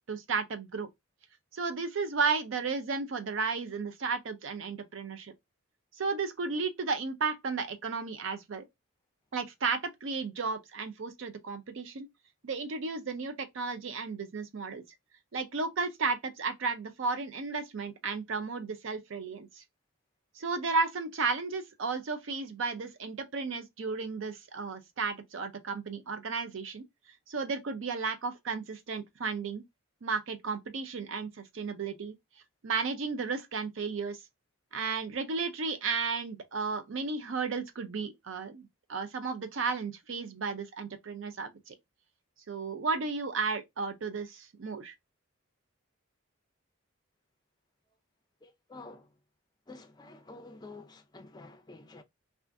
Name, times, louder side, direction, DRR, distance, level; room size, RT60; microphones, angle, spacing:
voice 1, 0.1-0.9 1.5-5.3 6.0-8.6 9.3-12.1 12.4-14.8 15.3-19.6 20.4-26.8 27.3-29.6 30.0-32.1 32.6-34.2 34.7-41.8 42.5-44.9, right 4 dB, 65° right, 0.5 m, -33 dB
voice 2, 48.4-49.2 49.7-52.0, left 3 dB, 20° left, 0.4 m, -49 dB
2.4 x 2.4 x 3.4 m
head